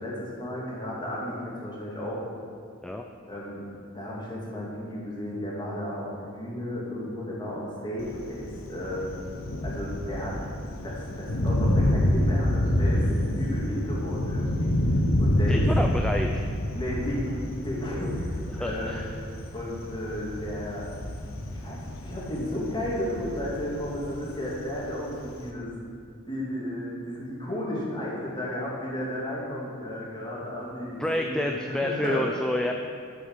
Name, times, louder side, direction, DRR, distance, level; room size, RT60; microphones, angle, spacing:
voice 1, 0.0-2.2 3.3-3.6 3.9-9.0 9.6-10.4 10.8-13.1 13.3-14.9 15.2-15.6 16.7-19.1 19.5-20.9 21.5-25.7 26.3-32.3, left 1 dB, 20° left, -5 dB, 2.3 m, -33 dB
Thunder, 8.0-25.5, left 1 dB, 70° left, 1.0 m, -28 dB
voice 2, 15.5-16.5 18.5-19.0 31.0-32.7, left 1 dB, 5° left, 2 dB, 0.3 m, -28 dB
11.0 x 6.5 x 5.6 m, 2.2 s
head